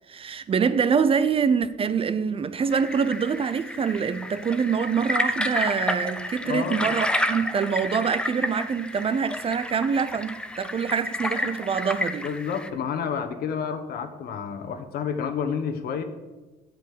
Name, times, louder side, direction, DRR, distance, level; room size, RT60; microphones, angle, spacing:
voice 1, 0.1-12.3, right 6 dB, 35° right, 0.5 m, -25 dB
sound 1, 2.7-12.7, left 1 dB, 5° left, 0.7 m, -30 dB
voice 2, 6.4-6.9 12.2-16.0, left 7 dB, 65° left, 1.3 m, -30 dB
8.3 x 7.7 x 6.7 m
cardioid pair, 110°, 17 cm